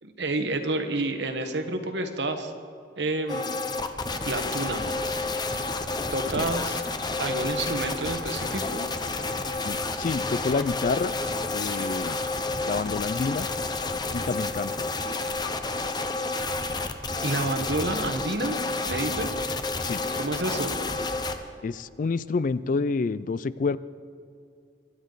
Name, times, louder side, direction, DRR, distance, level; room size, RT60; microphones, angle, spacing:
voice 1, 0.0-2.5 3.0-3.6 4.2-4.9 6.1-6.8 7.2-8.8 17.2-19.4 20.1-20.7, right 2 dB, 70° right, 6 dB, 1.3 m, -29 dB
sound 1, 3.3-21.4, left 3 dB, 25° left, 0.8 m, -30 dB
voice 2, 9.6-11.1 11.5-12.2 12.7-13.5 14.1-14.9 19.8-20.0 21.6-23.8, left 4 dB, 45° left, 17 dB, 0.4 m, -28 dB
23.5 x 11.5 x 4.0 m, 2.4 s
head